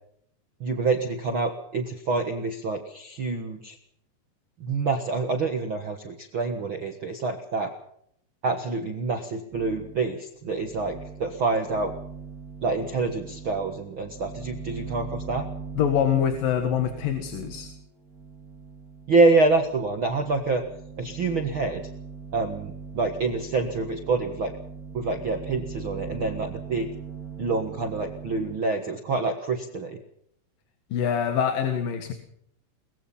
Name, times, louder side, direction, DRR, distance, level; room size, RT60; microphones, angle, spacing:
voice 1, 0.6-3.8 4.6-7.7 8.4-11.9 12.6-15.5 19.1-20.6 21.0-21.9 22.3-24.5 24.9-26.9 27.4-30.0, right 3 dB, 70° right, 6 dB, 1.1 m, -26 dB
sound 1, 9.5-10.2 10.5-28.6, right 5 dB, 30° right, 1.8 m, -41 dB
voice 2, 15.8-17.7 30.9-32.1, left 8 dB, 60° left, 7 dB, 3.1 m, -25 dB
22.0 x 21.5 x 5.7 m, 0.69 s
omnidirectional pair, 5.0 m